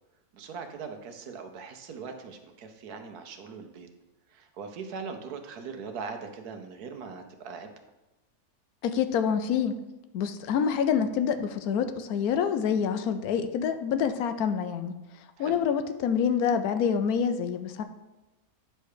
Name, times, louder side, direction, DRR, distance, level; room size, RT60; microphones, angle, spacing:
voice 1, 0.3-3.9 4.3-7.7 15.4-15.6, right 5 dB, 80° right, 6 dB, 1.4 m, -40 dB
voice 2, 8.8-9.8 10.1-14.9 15.4-17.8, left 7 dB, 75° left, 9 dB, 1.1 m, -27 dB
9.4 x 3.3 x 6.5 m, 1.0 s
omnidirectional pair, 1.6 m